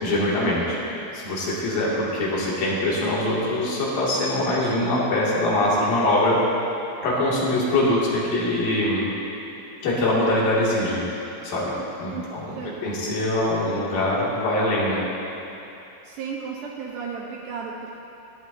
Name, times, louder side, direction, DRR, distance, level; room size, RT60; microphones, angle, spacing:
voice 1, 0.0-0.8 1.1-6.4 7.0-9.1 9.8-11.0 11.4-11.7 12.0-12.6 12.8-15.0, left 1 dB, 80° left, -6 dB, 3.9 m, -23 dB
voice 2, 12.5-12.9 16.0-18.0, right 5 dB, 75° right, -2 dB, 2.2 m, -34 dB
17.5 x 11.5 x 2.6 m, 2.9 s
omnidirectional pair, 3.9 m